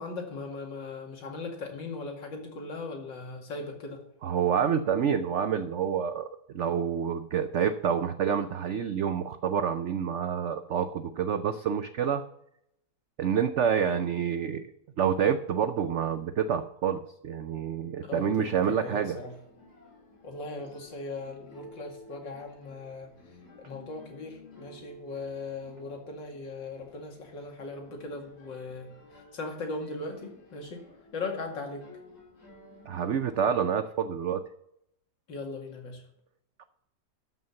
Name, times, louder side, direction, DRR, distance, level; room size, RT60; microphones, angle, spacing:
voice 1, 0.0-4.0 18.0-19.3 20.2-30.8 31.1-31.9 35.3-36.0, left 3 dB, 90° left, 2 dB, 2.9 m, -39 dB
voice 2, 4.2-6.3 6.5-12.2 13.2-14.7 15.0-19.2 32.9-34.4, right 7 dB, 90° right, 11 dB, 0.6 m, -28 dB
sound 1, 18.4-33.4, left 1 dB, 55° left, 3.5 m, -54 dB
12.5 x 5.9 x 7.0 m, 0.78 s
omnidirectional pair, 1.9 m